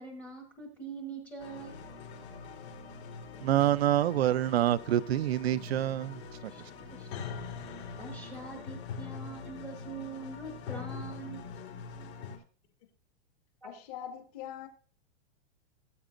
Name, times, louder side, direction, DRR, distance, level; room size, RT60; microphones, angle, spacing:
voice 1, 0.0-1.8 6.5-6.6 6.9-7.1 8.0-11.4 13.6-13.7, right 3 dB, 5° left, 1.2 m, -43 dB
sound 1, 1.4-12.4, left 5 dB, 60° left, 3.7 m, -43 dB
voice 2, 3.4-6.2, right 12 dB, 60° right, 0.6 m, -26 dB
voice 3, 13.6-14.7, left 10 dB, 30° left, 1.6 m, -42 dB
18.0 x 8.6 x 2.6 m
supercardioid pair, 180°, 36 cm